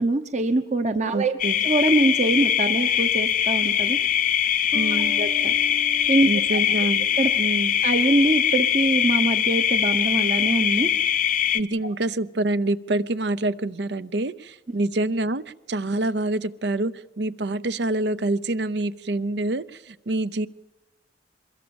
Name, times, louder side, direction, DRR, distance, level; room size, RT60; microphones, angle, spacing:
voice 1, 0.0-1.4 1.6-4.0 4.9-5.5 6.1-6.3 7.2-7.3 7.8-10.9, right 2 dB, 40° right, 8 dB, 0.9 m, -23 dB
voice 2, 1.1-1.6 4.7-5.3 6.3-7.1 7.4-7.8 11.5-15.4 15.7-20.5, right 2 dB, 65° right, 15 dB, 0.7 m, -26 dB
sound 1, 1.4-11.6, left 10 dB, 45° left, 0.7 m, -22 dB
Bass guitar, 4.7-8.2, right 1 dB, 10° right, 0.8 m, -41 dB
24.0 x 21.5 x 7.1 m, 1.0 s
head